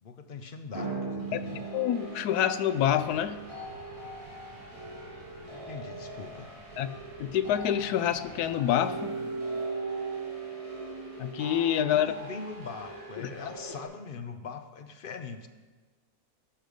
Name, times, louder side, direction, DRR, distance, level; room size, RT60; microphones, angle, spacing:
voice 1, 0.0-1.7 5.5-6.5 11.8-15.5, left 5 dB, 50° left, 7 dB, 0.6 m, -42 dB
sound 1, 0.7-13.8, right 3 dB, 20° right, 2.3 m, -39 dB
voice 2, 1.7-3.4 6.8-9.2 11.2-12.1 13.2-13.3, left 10 dB, 85° left, 13 dB, 1.1 m, -27 dB
sound 2, 2.8-8.8, right 3 dB, 70° right, 1.7 m, -53 dB
13.0 x 6.6 x 5.2 m, 1.3 s
omnidirectional pair, 1.6 m